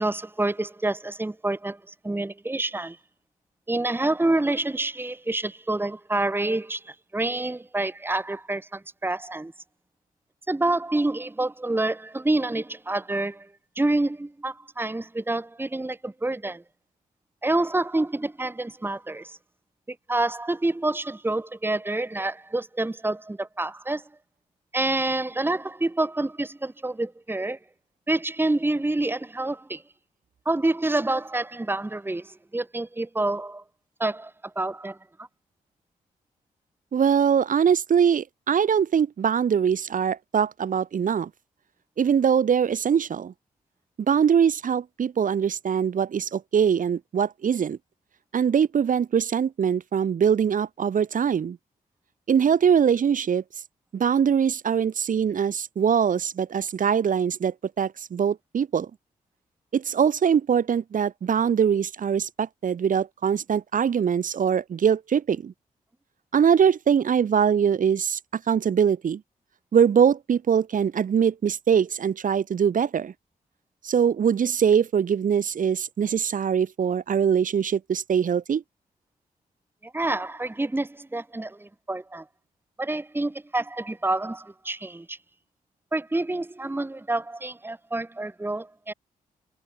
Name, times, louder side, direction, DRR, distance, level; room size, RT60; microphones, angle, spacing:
voice 1, 0.0-1.8 2.0-3.0 3.7-9.5 10.5-13.5 13.8-16.6 17.4-19.4 19.9-24.0 24.7-27.6 28.1-29.8 30.5-33.6 34.0-35.3 79.8-82.2 82.8-85.2 85.9-88.9, right 2 dB, 15° right, 1.9 m, -27 dB
voice 2, 36.9-41.3 42.0-43.3 44.1-47.8 48.3-51.6 52.3-53.4 53.9-58.9 59.7-65.5 66.3-69.2 69.7-73.1 73.8-78.6, right 7 dB, 60° right, 2.4 m, -22 dB
cardioid pair, 75°, 15 cm